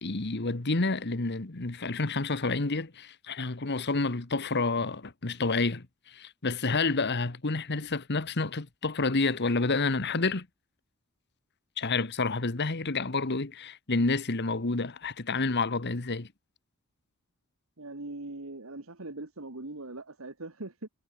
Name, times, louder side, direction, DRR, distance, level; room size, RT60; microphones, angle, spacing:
voice 1, 0.0-10.5 11.8-16.3, left 3 dB, 50° left, 1.4 m, -29 dB
voice 2, 17.8-20.9, right 2 dB, 65° right, 1.9 m, -41 dB
head